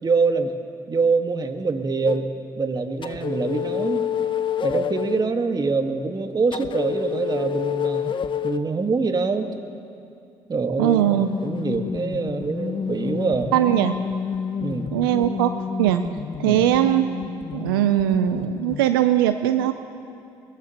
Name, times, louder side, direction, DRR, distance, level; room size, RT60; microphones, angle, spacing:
voice 1, 0.0-0.5 0.9-2.3 2.6-4.0 4.6-8.2 8.4-9.5 10.5-13.5 14.6-14.9 16.4-16.6, right 4 dB, 35° right, 6 dB, 1.5 m, -24 dB
sound 1, 2.0-2.2 3.0-5.2 6.5-8.7 11.0-18.8, left 8 dB, 45° left, 0.7 m, -29 dB
voice 2, 10.8-11.3 13.5-14.0 14.9-15.5 15.8-16.0 16.4-17.1 17.5-19.7, right 13 dB, 90° right, 10 dB, 0.5 m, -20 dB
22.5 x 21.0 x 2.9 m, 2.5 s
hypercardioid pair, 55°, 12 cm